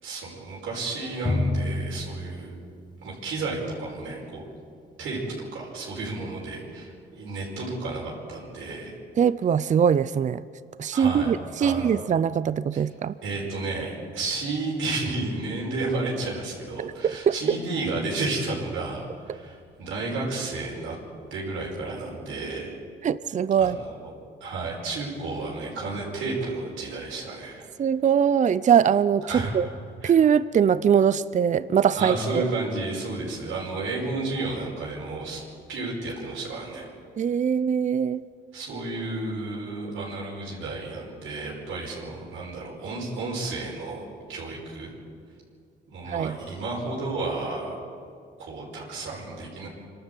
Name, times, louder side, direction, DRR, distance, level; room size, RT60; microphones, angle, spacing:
voice 1, 0.0-2.5 3.0-4.5 5.0-9.0 10.9-11.3 11.6-11.9 12.7-12.8 13.2-21.0 21.3-22.8 23.6-24.1 24.4-27.7 29.3-29.5 30.0-30.1 31.9-35.4 35.7-36.9 38.5-44.9 45.9-47.8 48.4-49.7, right 3 dB, 80° right, -4 dB, 5.4 m, -32 dB
Drum, 1.3-3.6, left 2 dB, 20° left, 1.5 m, -30 dB
voice 2, 9.2-10.4 10.8-13.1 16.8-17.6 23.0-23.8 27.8-29.7 30.0-32.4 37.2-38.2 46.1-46.4, right 8 dB, 40° right, 16 dB, 0.5 m, -22 dB
25.0 x 12.5 x 8.2 m, 2.3 s
cardioid pair, 90°, 20 cm